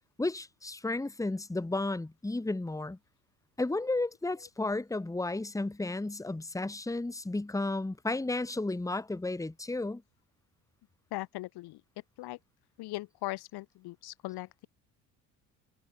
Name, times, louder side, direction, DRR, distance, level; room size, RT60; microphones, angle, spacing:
voice 1, 0.2-3.0 3.6-10.0, left 2 dB, 10° left, 1.6 m, -33 dB
voice 2, 11.1-11.8 12.2-12.4 12.8-14.7, left 18 dB, 60° left, 1.6 m, -39 dB
hypercardioid pair, 70°, 43 cm